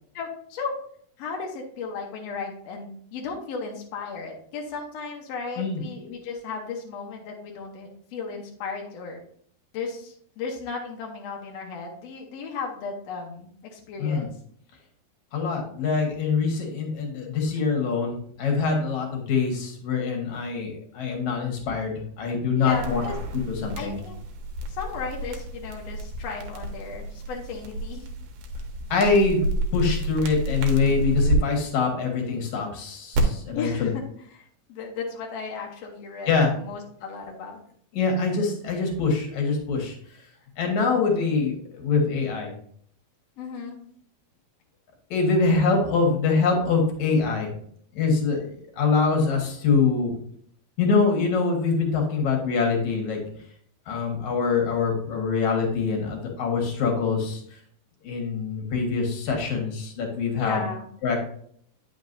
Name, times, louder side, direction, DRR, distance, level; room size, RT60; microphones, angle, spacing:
voice 1, 0.1-0.8 1.2-9.2 9.7-14.3 22.6-23.2 23.8-24.2 24.7-28.1 33.5-34.0 34.3-37.6 43.4-43.8 60.4-60.9, left 4 dB, 75° left, 0 dB, 1.5 m, -35 dB
voice 2, 15.3-23.0 23.6-24.0 28.9-29.4 29.7-33.9 36.3-36.5 37.9-40.0 40.6-42.5 45.1-47.5 47.9-50.1 50.8-53.2 53.9-57.4 58.0-60.7 61.0-61.2, left 4 dB, 60° left, 1 dB, 2.5 m, -24 dB
sound 1, 22.7-31.4 33.1-33.2, right 1 dB, 80° right, 2.8 m, -30 dB
9.4 x 5.9 x 2.6 m, 0.62 s
omnidirectional pair, 4.3 m